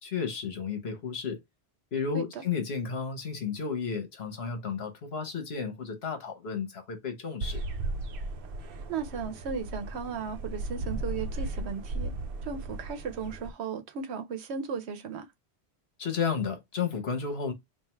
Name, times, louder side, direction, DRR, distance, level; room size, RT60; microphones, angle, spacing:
voice 1, 0.0-1.4 1.9-7.6 16.0-17.5, left 6 dB, 70° left, 1.3 m, -32 dB
sound 1, 7.4-13.5, right 2 dB, 65° right, 0.7 m, -36 dB
voice 2, 8.9-12.1 12.4-15.3, right 6 dB, 80° right, 1.0 m, -36 dB
3.4 x 2.5 x 4.4 m
omnidirectional pair, 1.1 m